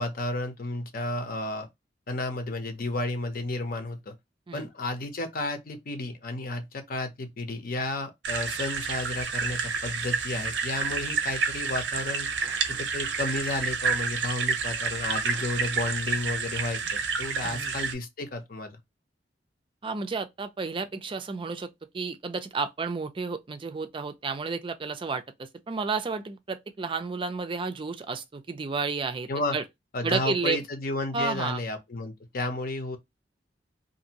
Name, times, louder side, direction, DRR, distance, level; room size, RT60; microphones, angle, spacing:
voice 1, 0.0-1.7 2.1-4.1 4.5-12.3 12.7-18.8 29.3-29.6 29.9-33.0, left 2 dB, 55° left, 0.7 m, -32 dB
sound 1, 8.2-17.9, right 5 dB, 85° right, 0.6 m, -29 dB
voice 2, 17.4-17.7 19.8-29.6 30.0-30.6 31.1-31.6, right 4 dB, 30° right, 0.4 m, -31 dB
2.6 x 2.6 x 2.8 m
head